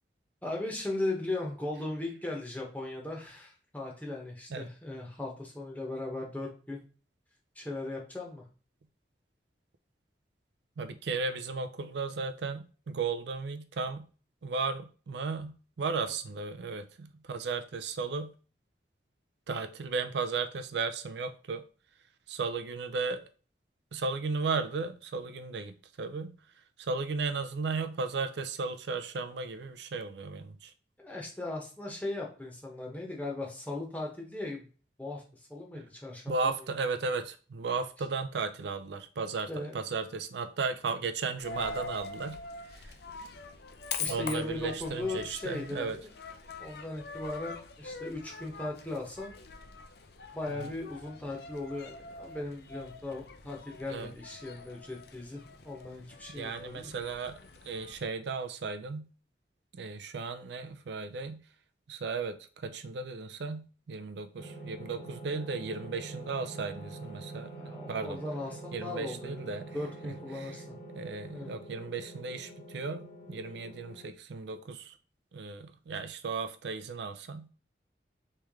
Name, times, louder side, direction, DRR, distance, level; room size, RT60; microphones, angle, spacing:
voice 1, 0.4-6.8 7.5-8.4 31.0-34.7 35.0-36.5 39.5-39.8 44.0-46.1 46.6-49.3 50.3-56.9 67.5-70.8 71.3-71.5, left 2 dB, 10° left, -1 dB, 0.9 m, -38 dB
voice 2, 10.8-14.1 14.4-18.3 19.5-21.6 22.3-23.2 23.9-26.3 26.8-30.7 35.7-35.8 36.3-42.4 42.7-42.9 44.0-46.0 50.5-50.7 53.9-54.1 56.3-57.4 57.6-59.1 59.7-61.4 61.9-67.5 67.9-68.2 68.7-69.8 70.0-70.6 71.0-75.0 75.3-77.5, right 4 dB, 75° right, 9 dB, 0.4 m, -35 dB
Coin (dropping), 41.4-58.0, left 4 dB, 65° left, 0.5 m, -44 dB
sound 1, 64.4-74.1, right 2 dB, 35° left, 1.0 m, -46 dB
3.2 x 3.1 x 3.5 m, 0.37 s
head